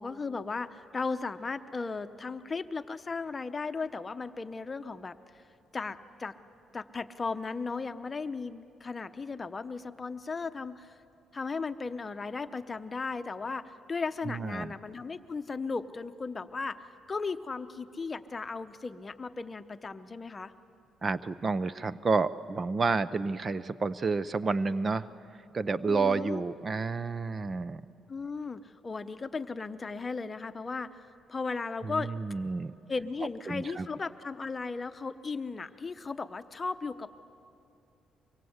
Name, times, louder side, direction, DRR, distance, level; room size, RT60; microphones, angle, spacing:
voice 1, 0.0-5.4 5.7-6.4 6.7-11.0 11.3-20.5 25.8-26.4 28.1-31.0 31.3-32.1 32.9-37.2, left 4 dB, 30° left, 11 dB, 0.8 m, -36 dB
voice 2, 14.3-14.7 21.0-25.1 25.5-27.8 31.8-32.7 33.5-33.9, right 4 dB, 35° right, 16 dB, 0.6 m, -30 dB
24.5 x 22.5 x 8.0 m, 2.6 s
cardioid pair, 90°, 0 cm